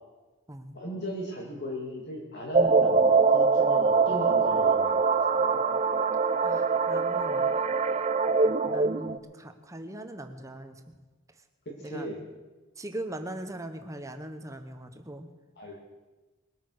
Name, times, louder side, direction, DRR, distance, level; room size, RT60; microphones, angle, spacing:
voice 1, 0.7-5.5 11.7-12.2 15.6-15.8, equal, 55° left, -1 dB, 2.3 m, -37 dB
sound 1, 2.5-9.2, right 4 dB, 35° right, 0.6 m, -23 dB
voice 2, 6.4-7.5 8.7-10.9 11.3-11.4 11.8-12.1 12.8-15.3, right 1 dB, 15° right, 6 dB, 1.0 m, -40 dB
20.5 x 9.1 x 6.5 m, 1.2 s
head